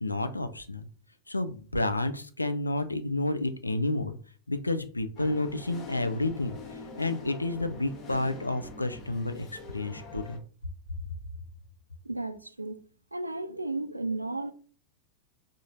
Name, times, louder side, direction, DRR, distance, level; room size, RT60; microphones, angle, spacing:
voice 1, 0.0-0.9 1.3-4.2 4.5-6.6 7.0-10.4, left 2 dB, 85° left, 0.4 m, -30 dB
sound 1, 5.2-10.4, left 3 dB, 35° left, 0.8 m, -45 dB
voice 2, 12.0-12.8 13.1-14.5, right 2 dB, 85° right, 0.3 m, -34 dB
4.1 x 2.5 x 2.5 m
figure-of-eight pair, 90°, 0 cm